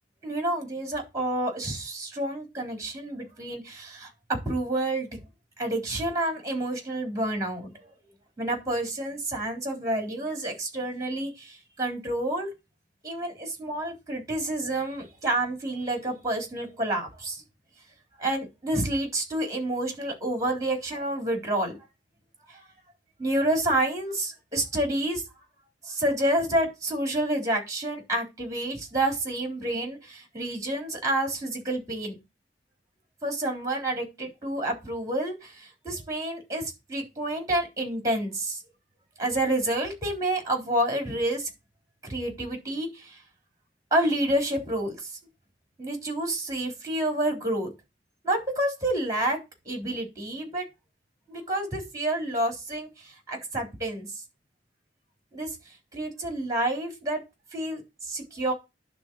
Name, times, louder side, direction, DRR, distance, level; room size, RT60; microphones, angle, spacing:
voice 1, 0.2-4.1 4.5-5.2 5.6-7.9 8.4-12.5 13.0-17.4 18.2-21.8 23.2-25.2 25.9-32.2 33.2-38.6 39.2-41.5 42.1-43.2 43.9-45.0 45.8-47.7 48.2-49.4 49.7-50.7 51.3-54.1 55.3-55.5 55.9-57.2 57.5-57.8 58.1-58.5, right 1 dB, 20° right, 3.8 m, -29 dB
11.5 x 3.9 x 6.3 m
head